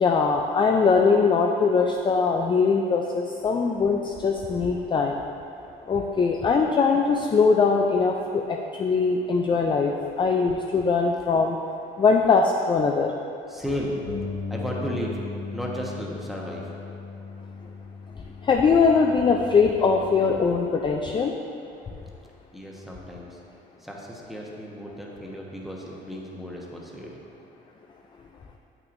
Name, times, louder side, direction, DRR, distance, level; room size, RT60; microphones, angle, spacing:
voice 1, 0.0-5.2 5.9-8.4 8.8-11.6 12.0-13.1 18.5-21.3, left 5 dB, 25° left, 2 dB, 0.3 m, -21 dB
voice 2, 13.5-14.0 14.5-15.2 15.5-16.6 22.5-23.4 23.8-27.1, equal, ahead, -3 dB, 1.0 m, -34 dB
Bass guitar, 14.1-20.3, left 4 dB, 45° left, 1.3 m, -37 dB
7.9 x 5.9 x 2.6 m, 2.6 s
cardioid pair, 100°, 19 cm